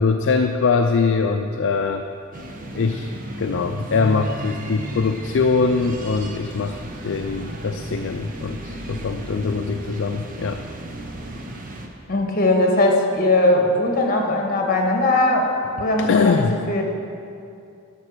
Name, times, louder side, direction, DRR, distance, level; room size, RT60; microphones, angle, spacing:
voice 1, 0.0-2.0 2.7-10.6 15.9-16.6, left 4 dB, 60° left, 5 dB, 0.4 m, -22 dB
sound 1, 2.3-11.9, right 1 dB, 40° right, 1.0 m, -34 dB
voice 2, 12.1-15.5 15.8-16.8, left 2 dB, 45° left, 2 dB, 1.4 m, -19 dB
12.0 x 5.9 x 6.6 m, 2.5 s
head